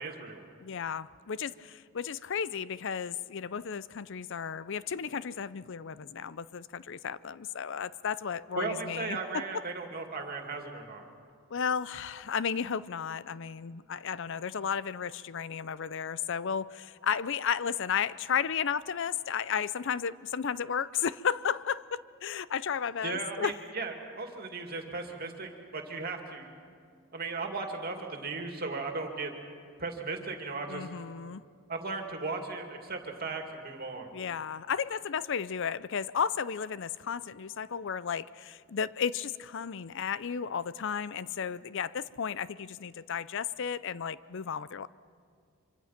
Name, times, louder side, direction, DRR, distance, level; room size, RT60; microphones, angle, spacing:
voice 1, 0.0-0.5 8.5-11.0 23.0-26.5 27.1-29.3 29.8-30.9 31.7-34.1, right 3 dB, 45° right, 3 dB, 2.6 m, -36 dB
voice 2, 0.6-9.4 11.5-23.5 30.7-31.4 34.1-44.9, left 7 dB, 60° left, 17 dB, 0.5 m, -33 dB
25.5 x 25.0 x 5.9 m, 2.2 s
head